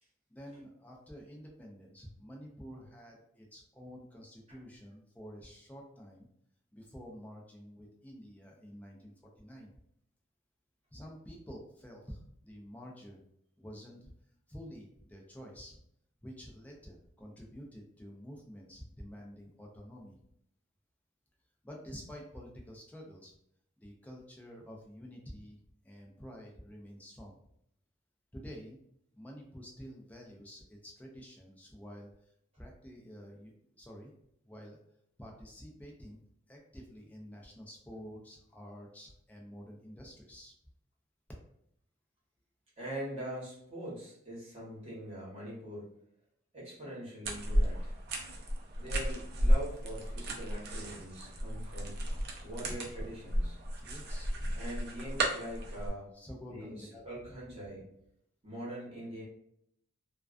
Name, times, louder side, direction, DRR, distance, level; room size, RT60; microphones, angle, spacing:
voice 1, 0.3-6.3 6.7-9.7 10.9-13.2 13.6-14.1 14.5-15.8 16.2-20.2 21.6-23.3 23.8-27.4 28.3-28.8 29.1-32.3 32.6-34.1 34.4-34.8 35.2-36.2 36.5-40.5 53.8-54.6 56.1-57.3, equal, 10° left, -1 dB, 0.4 m, -49 dB
voice 2, 42.8-45.9 46.5-47.9 48.8-52.0 52.4-53.6 54.5-56.1 56.5-57.8 58.4-59.2, right 1 dB, 30° right, -7 dB, 1.1 m, -43 dB
sound 1, 47.2-55.9, equal, 50° right, 0.5 m, -33 dB
2.3 x 2.2 x 2.4 m, 0.72 s
head